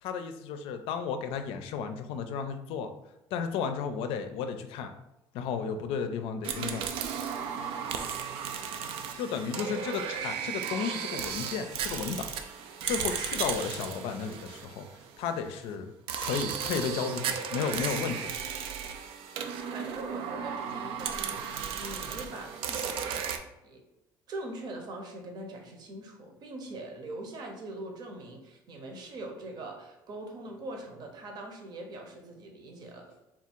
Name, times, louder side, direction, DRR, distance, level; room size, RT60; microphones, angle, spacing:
voice 1, 0.0-2.9 3.3-4.9 5.3-6.9 9.2-12.3 12.9-14.9 15.2-15.9 16.2-18.2, left 6 dB, 75° left, 8 dB, 0.5 m, -33 dB
sound 1, 6.4-15.3 16.1-23.4, right 7 dB, 75° right, 0.5 m, -35 dB
voice 2, 19.7-23.8 24.3-33.1, right 2 dB, 50° right, 3 dB, 0.9 m, -42 dB
3.6 x 2.5 x 4.4 m, 0.93 s
cardioid pair, 140°, 9 cm